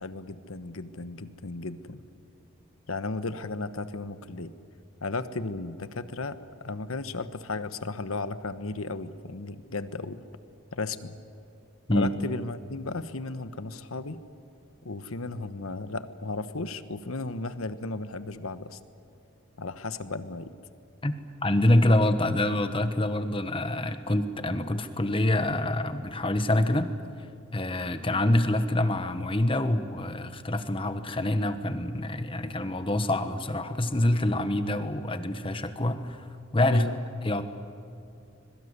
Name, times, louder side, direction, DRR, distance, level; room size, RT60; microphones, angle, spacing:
voice 1, 0.0-2.0 2.9-4.5 5.0-6.4 6.6-10.2 10.7-11.2 11.9-14.2 14.8-18.8 19.6-20.5 36.7-37.0, left 3 dB, 80° left, 12 dB, 1.2 m, -35 dB
voice 2, 21.4-26.9 27.5-36.2 36.5-36.9 37.2-37.5, left 1 dB, 25° left, 9 dB, 1.3 m, -26 dB
25.5 x 22.5 x 8.2 m, 2.6 s
head